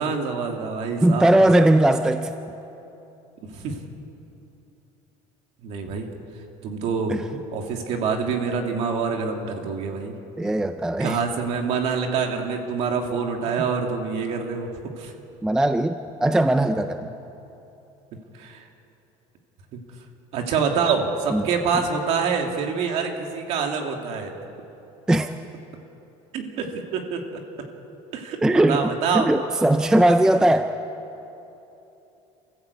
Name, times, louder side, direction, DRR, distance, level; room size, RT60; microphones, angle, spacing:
voice 1, 0.0-1.4 3.4-3.8 5.6-6.1 6.6-7.2 7.5-10.1 11.0-14.7 15.0-15.1 18.3-18.6 19.7-19.8 20.3-24.3 26.3-27.4 28.1-29.3, right 5 dB, 50° right, 3 dB, 2.6 m, -26 dB
voice 2, 1.0-2.3 7.1-7.2 10.4-11.2 13.6-13.7 15.4-17.1 21.3-21.4 25.1-25.3 28.4-28.8 29.1-30.7, right 1 dB, 5° right, 8 dB, 0.4 m, -19 dB
27.5 x 15.0 x 8.4 m, 3.0 s
cardioid pair, 180°, 14 cm